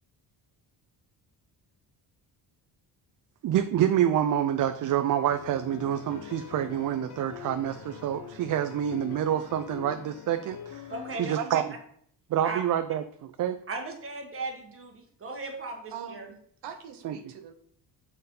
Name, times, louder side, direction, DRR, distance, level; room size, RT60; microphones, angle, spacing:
voice 1, 3.4-10.9 11.2-11.7 12.3-13.0 13.4-13.6 17.0-17.2, right 10 dB, 50° right, 9 dB, 0.5 m, -27 dB
sound 1, 5.3-11.1, left 8 dB, 70° left, 0.9 m, -44 dB
voice 2, 10.9-11.4 12.4-12.6 13.7-16.3, right 3 dB, 30° right, 2 dB, 1.5 m, -37 dB
voice 3, 15.9-17.5, right 8 dB, 75° right, 7 dB, 0.8 m, -43 dB
6.5 x 4.1 x 5.3 m, 0.64 s
cardioid pair, 125°, 41 cm